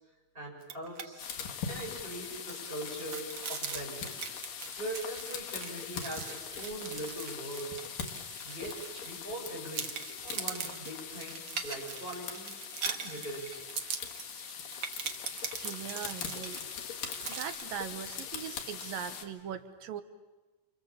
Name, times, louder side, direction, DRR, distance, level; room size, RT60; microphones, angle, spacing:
voice 1, 0.3-1.4 1.7-4.1 4.8-7.7 8.4-8.7 9.0-9.9 10.2-12.5 12.8-13.6, right 1 dB, 15° right, -2 dB, 7.0 m, -41 dB
sound 1, 0.6-1.1 1.4-1.5 1.9-9.4 9.7-17.6, right 6 dB, 50° right, 1.5 m, -41 dB
sound 2, 1.2-19.3, left 7 dB, 75° left, 3.5 m, -42 dB
voice 2, 15.6-16.6 17.3-20.0, right 9 dB, 90° right, 9 dB, 2.9 m, -40 dB
28.5 x 27.0 x 7.3 m, 1.2 s
omnidirectional pair, 3.9 m